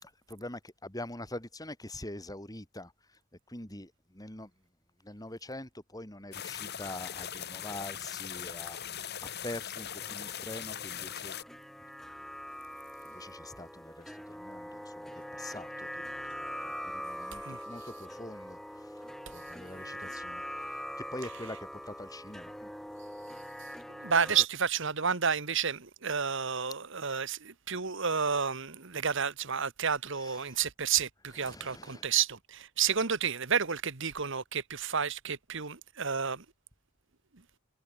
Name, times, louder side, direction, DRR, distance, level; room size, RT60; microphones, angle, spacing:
voice 1, 0.0-2.9 3.5-4.5 5.0-9.1 9.4-11.3 13.0-16.4 16.6-20.4 21.1-22.7 24.3-24.5 30.2-30.6 31.2-32.1, left 1 dB, 15° left, 4.1 m, -44 dB
sound 1, 6.3-11.4, left 9 dB, 50° left, 2.2 m, -40 dB
sound 2, 10.0-24.5, equal, ahead, 3.4 m, -43 dB
voice 2, 24.0-36.4, right 6 dB, 60° right, 1.7 m, -31 dB
head